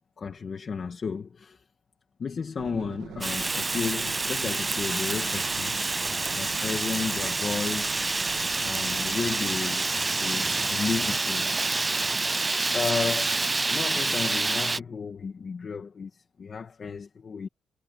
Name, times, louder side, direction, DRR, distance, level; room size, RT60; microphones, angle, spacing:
voice 1, 0.2-1.6 2.2-5.8 6.4-8.0 8.6-9.9 10.2-11.8 12.7-17.5, left 5 dB, 35° left, 1.8 m, -33 dB
sound 1, 2.6-9.6, right 11 dB, 90° right, 1.8 m, -44 dB
Fire, 3.2-14.8, right 3 dB, 15° right, 0.4 m, -27 dB
sound 2, 5.0-12.6, right 5 dB, 35° right, 3.1 m, -47 dB
cardioid pair, 155°, 0 cm